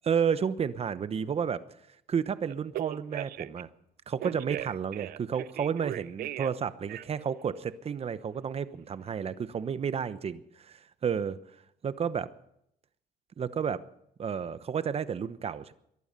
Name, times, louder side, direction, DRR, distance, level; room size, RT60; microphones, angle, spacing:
voice 1, 0.0-1.6 2.1-3.7 4.1-11.4 11.8-12.3 13.4-13.8 14.2-15.7, right 7 dB, 35° right, 14 dB, 1.0 m, -31 dB
Telephone, 2.5-3.6 4.2-6.6 6.9-7.3, right 14 dB, 60° right, 0.5 m, -37 dB
22.0 x 12.0 x 5.4 m, 0.74 s
cardioid pair, 110°, 17 cm